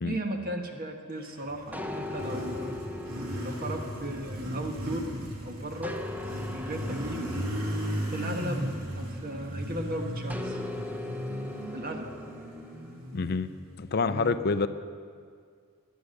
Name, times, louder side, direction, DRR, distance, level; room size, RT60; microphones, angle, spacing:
voice 1, 0.0-2.8 3.4-5.1 5.4-6.0 6.5-7.2 8.1-8.7 8.9-10.6 11.7-12.2 14.0-14.3, right 1 dB, 45° right, 3 dB, 1.6 m, -36 dB
Motorcycle, 1.3-13.9, equal, 90° right, 2.9 m, -36 dB
sound 1, 1.7-5.3 5.8-9.5 10.3-13.0, left 2 dB, 10° right, 0.8 m, -40 dB
voice 2, 13.1-13.5 13.8-14.7, left 4 dB, 50° left, 12 dB, 0.5 m, -27 dB
20.5 x 9.4 x 6.6 m, 2.2 s
head